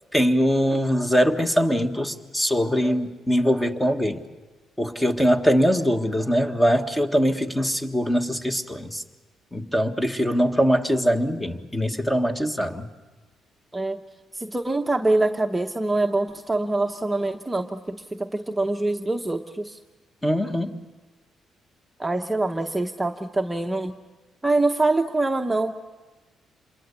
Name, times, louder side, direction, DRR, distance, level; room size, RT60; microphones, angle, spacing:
voice 1, 0.1-4.2 4.8-9.0 9.5-12.9 20.2-20.7, equal, 10° left, 6 dB, 1.5 m, -22 dB
voice 2, 14.3-19.8 22.0-24.0 24.4-25.7, right 2 dB, 10° right, 4 dB, 0.9 m, -24 dB
27.0 x 22.5 x 6.9 m, 1.3 s
cardioid pair, 90°, 0 cm